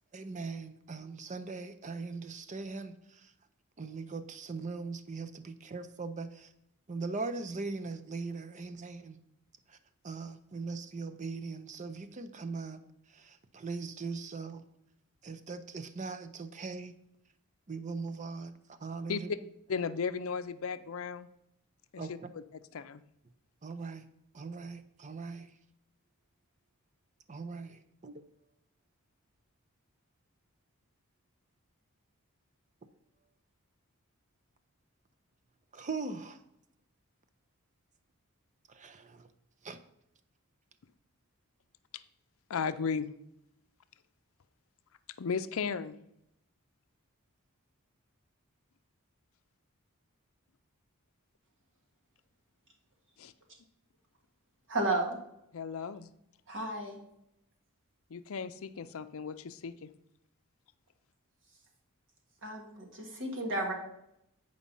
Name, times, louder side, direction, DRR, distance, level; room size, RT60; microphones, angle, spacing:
voice 1, 0.1-2.9 3.8-6.5 6.9-9.2 10.0-12.8 13.1-14.6 15.2-16.9 17.7-18.5 18.8-19.3 22.0-22.1 23.6-24.0 24.3-25.5 27.3-28.1 35.7-36.4 38.7-39.3 39.6-39.8, right 4 dB, 35° right, 11 dB, 0.6 m, -40 dB
voice 2, 19.7-21.3 21.9-23.0 41.9-42.0 42.5-43.1 45.2-45.9 53.2-53.3 55.5-56.1 58.1-59.9, left 5 dB, 65° left, 11 dB, 0.5 m, -35 dB
voice 3, 54.7-55.2 56.5-57.0 62.4-63.7, right 2 dB, 60° right, 1 dB, 1.9 m, -33 dB
8.6 x 5.1 x 5.4 m, 0.79 s
head